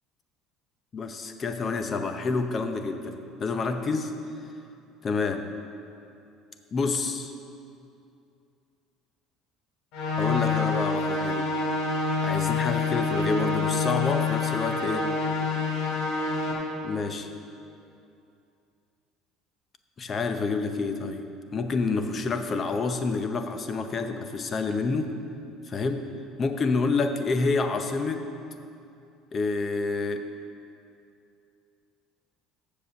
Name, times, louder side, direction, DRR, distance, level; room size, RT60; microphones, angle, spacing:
voice 1, 0.9-4.1 5.0-5.4 6.7-7.3 10.2-11.5 12.2-15.1 16.8-17.3 20.0-21.3 21.5-25.1 25.7-26.1 26.4-28.3 29.3-30.2, left 4 dB, 30° left, 7 dB, 0.6 m, -28 dB
sound 1, 9.9-16.5, left 4 dB, 70° left, 1.8 m, -27 dB
7.6 x 6.7 x 6.9 m, 2.6 s
cardioid pair, 135°, 0 cm